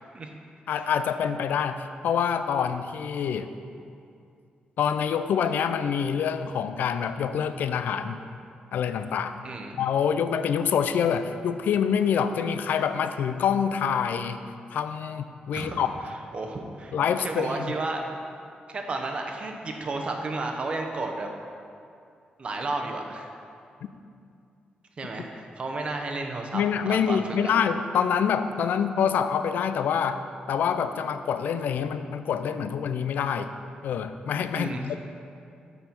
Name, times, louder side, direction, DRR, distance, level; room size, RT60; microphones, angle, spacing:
voice 1, 0.7-3.5 4.8-8.2 8.7-9.4 9.8-14.4 14.7-15.9 16.9-17.7 26.5-30.2 30.5-33.5 33.8-35.0, left 7 dB, 85° left, 10 dB, 0.4 m, -26 dB
voice 2, 9.4-9.8 15.5-15.9 16.3-18.1 18.7-21.3 22.4-23.3 25.0-27.5 34.5-35.0, right 2 dB, 40° right, 3 dB, 0.8 m, -32 dB
6.9 x 5.5 x 6.0 m, 2.4 s
wide cardioid pair, 135°, 3 cm